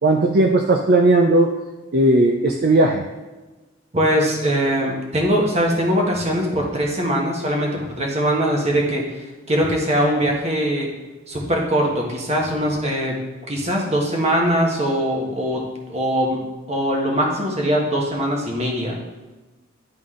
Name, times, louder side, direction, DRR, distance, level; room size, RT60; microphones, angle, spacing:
voice 1, 0.0-1.5 1.9-3.1, right 2 dB, 50° right, 2 dB, 0.5 m, -16 dB
voice 2, 3.9-10.9 11.3-13.2 13.5-16.4 16.7-19.0, equal, 35° right, -1 dB, 1.4 m, -21 dB
10.5 x 3.9 x 3.7 m, 1.2 s
head